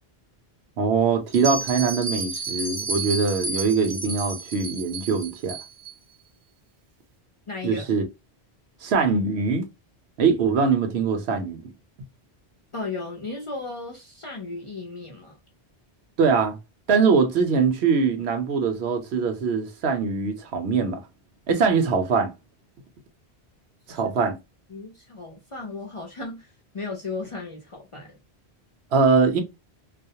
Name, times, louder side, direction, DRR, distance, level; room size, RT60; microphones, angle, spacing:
voice 1, 0.8-5.6 7.6-8.0 8.8-9.6 10.2-11.7 16.2-16.5 16.9-21.0 21.5-22.3 23.9-24.4 28.9-29.4, right 5 dB, 75° right, 0.9 m, -22 dB
Bell, 1.3-5.9, right 3 dB, 50° right, 0.4 m, -32 dB
voice 2, 7.5-7.9 12.7-15.4 23.9-24.0 24.7-28.2, left 3 dB, 40° left, 0.4 m, -35 dB
2.4 x 2.0 x 2.7 m
omnidirectional pair, 1.1 m